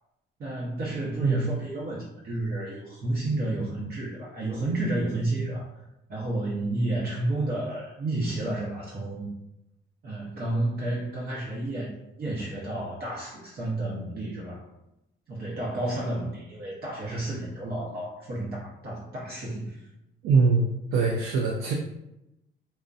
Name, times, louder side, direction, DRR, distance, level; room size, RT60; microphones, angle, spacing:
voice 1, 0.4-5.8 6.1-9.3 10.0-11.9 12.2-14.7 15.3-19.9, right 2 dB, 50° right, -6 dB, 0.8 m, -31 dB
voice 2, 20.2-21.7, right 4 dB, 85° right, -1 dB, 0.4 m, -23 dB
2.5 x 2.1 x 2.4 m, 0.88 s
cardioid pair, 90°, 20 cm